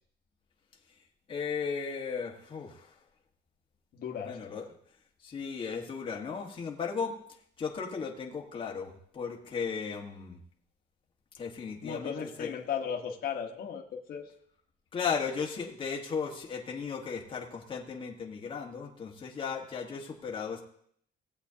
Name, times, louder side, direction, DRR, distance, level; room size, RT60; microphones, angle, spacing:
voice 1, 1.3-2.9 4.2-4.6 5.2-7.2 7.6-10.4 11.3-12.1 12.4-12.5 14.9-20.6, left 6 dB, 25° left, 0 dB, 1.4 m, -35 dB
voice 2, 3.9-4.4 11.8-14.3, left 7 dB, 55° left, 0 dB, 1.2 m, -36 dB
18.0 x 8.2 x 2.8 m, 0.65 s
cardioid pair, 180°, 19 cm